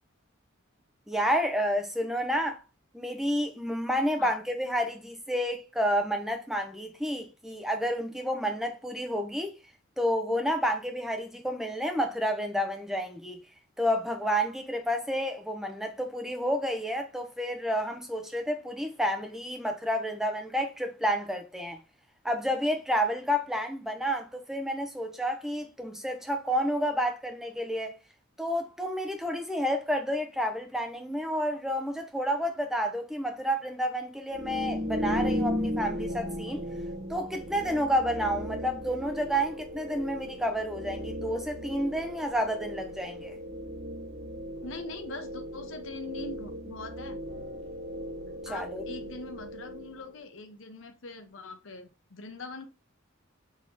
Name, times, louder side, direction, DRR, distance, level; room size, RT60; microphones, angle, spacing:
voice 1, 1.1-2.6 2.9-9.6 10.0-13.4 13.8-21.8 22.2-27.9 28.4-36.6 37.1-43.4 48.4-48.8, equal, ahead, 0.7 m, -30 dB
sound 1, 34.3-50.1, equal, 35° right, 1.5 m, -36 dB
voice 2, 44.6-47.2 48.5-52.6, left 3 dB, 65° left, 0.8 m, -42 dB
4.1 x 3.0 x 3.8 m
head